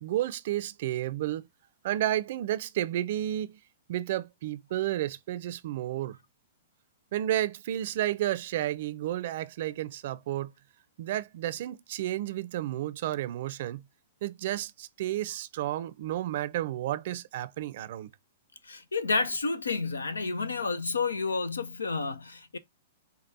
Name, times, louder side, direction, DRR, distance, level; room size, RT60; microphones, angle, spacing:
voice 1, 0.0-1.5 1.8-3.6 3.9-6.2 7.1-10.5 11.0-13.8 14.2-18.1, right 13 dB, 55° right, 0.5 m, -31 dB
voice 2, 18.6-22.6, left 4 dB, 90° left, 0.6 m, -30 dB
5.3 x 2.4 x 4.1 m
hypercardioid pair, 115°, 0 cm